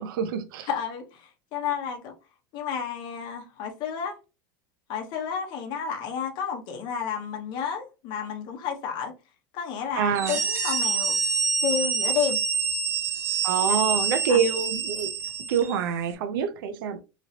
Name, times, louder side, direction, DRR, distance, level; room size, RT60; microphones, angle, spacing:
voice 1, 0.0-0.7 10.0-10.4 13.4-15.1 15.5-17.0, right 7 dB, 80° right, 0.6 m, -26 dB
voice 2, 0.6-2.1 2.5-4.2 4.9-9.1 9.5-11.2 11.6-12.4 13.7-13.8 14.3-14.4, left 7 dB, 45° left, 0.9 m, -31 dB
sound 1, 10.1-15.8, right 5 dB, 25° right, 0.6 m, -27 dB
3.0 x 2.9 x 2.7 m
supercardioid pair, 150°, 11 cm